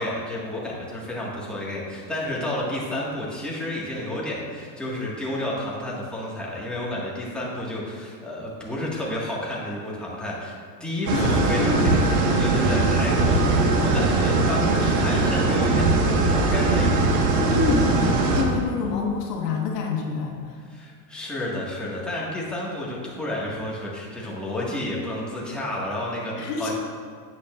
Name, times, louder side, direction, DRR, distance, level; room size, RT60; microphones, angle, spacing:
voice 1, 0.0-17.1 20.7-26.7, left 1 dB, ahead, -6 dB, 1.7 m, -31 dB
voice 2, 11.1-12.0 12.8-12.9 13.2-13.5 17.4-20.6 26.4-26.7, left 4 dB, 70° left, 0 dB, 1.5 m, -28 dB
sound 1, 11.1-18.4, right 3 dB, 70° right, 1.7 m, -20 dB
9.9 x 8.4 x 2.5 m, 2.1 s
supercardioid pair, 130°, 50 cm